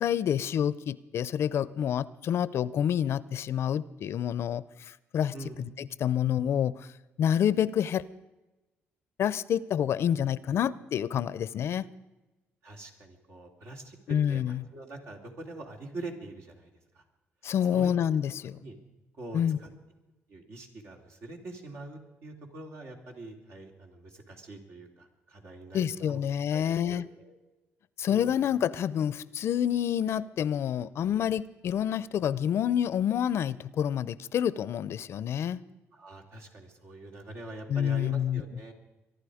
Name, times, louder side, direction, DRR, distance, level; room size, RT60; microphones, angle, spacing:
voice 1, 0.0-4.6 5.1-6.8 7.2-8.0 9.2-11.8 14.1-14.7 17.4-18.6 19.3-19.6 25.7-27.1 28.0-35.6 37.7-38.4, left 9 dB, 65° left, 19 dB, 0.5 m, -28 dB
voice 2, 12.6-17.0 17.7-17.9 18.6-18.8 19.2-19.7 20.3-26.2 26.5-27.3 28.0-28.4 35.9-38.7, right 2 dB, 70° right, 2 dB, 3.3 m, -44 dB
24.0 x 11.5 x 5.0 m, 1.1 s
cardioid pair, 80°, 5 cm